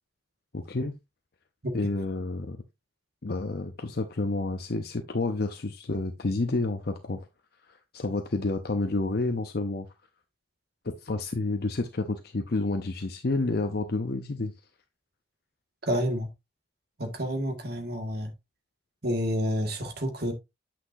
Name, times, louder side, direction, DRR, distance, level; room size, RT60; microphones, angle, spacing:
voice 1, 0.5-0.9 1.7-2.6 3.2-7.2 7.9-9.9 10.8-14.5, left 2 dB, 50° left, 0.7 m, -29 dB
voice 2, 15.8-16.3 17.0-18.3 19.0-20.3, equal, 50° right, 1.9 m, -29 dB
8.6 x 5.9 x 2.7 m
head